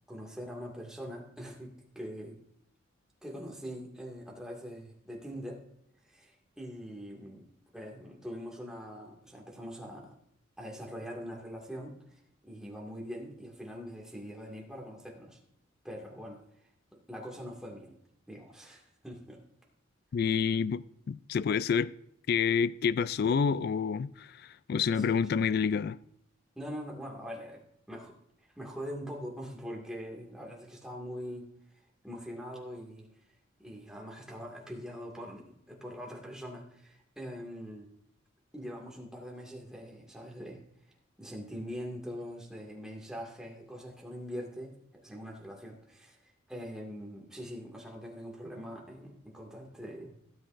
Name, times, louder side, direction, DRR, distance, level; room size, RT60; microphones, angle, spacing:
voice 1, 0.1-2.4 3.2-5.6 6.0-7.4 7.7-10.1 10.6-15.4 15.8-16.4 17.1-18.0 18.3-19.4 24.9-25.1 26.6-27.6 27.9-28.2 28.6-31.5 32.0-33.1 33.6-37.9 38.5-40.6 41.2-50.2, equal, 5° right, 2.0 m, -43 dB
voice 2, 20.1-21.9 22.3-24.3 24.7-26.0, left 6 dB, 50° left, 0.3 m, -28 dB
16.0 x 7.9 x 2.6 m
head